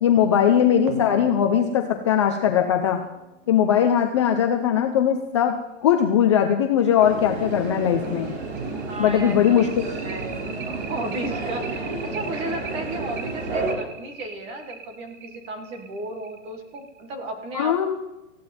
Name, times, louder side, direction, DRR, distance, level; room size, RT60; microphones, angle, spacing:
voice 1, 0.0-3.0 3.5-8.3 9.0-9.8 17.5-17.9, left 9 dB, 25° left, 4 dB, 0.7 m, -20 dB
sound 1, 0.9-4.0 5.5-5.6 6.0-6.1 6.5-6.6 7.0-17.1, right 5 dB, 40° right, 1.6 m, -40 dB
sound 2, 7.0-13.7, right 3 dB, 55° right, 4.8 m, -31 dB
voice 2, 8.9-11.7 12.0-17.8, right 1 dB, 15° right, 5 dB, 1.5 m, -34 dB
19.5 x 15.0 x 4.3 m, 1.0 s
hypercardioid pair, 175°, 38 cm